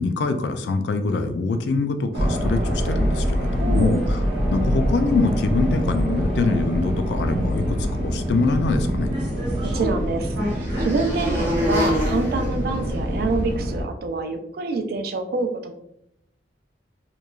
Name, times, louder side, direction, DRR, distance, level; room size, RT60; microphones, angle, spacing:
voice 1, 0.0-4.0 4.5-9.1, left 3 dB, 70° left, 8 dB, 0.3 m, -24 dB
sound 1, 2.1-13.8, equal, 80° right, 0.9 m, -24 dB
voice 2, 3.6-4.1 9.6-15.7, right 3 dB, 55° right, 6 dB, 0.3 m, -26 dB
sound 2, 8.9-13.5, left 1 dB, 15° right, 0.6 m, -29 dB
2.9 x 2.2 x 2.3 m, 0.76 s
head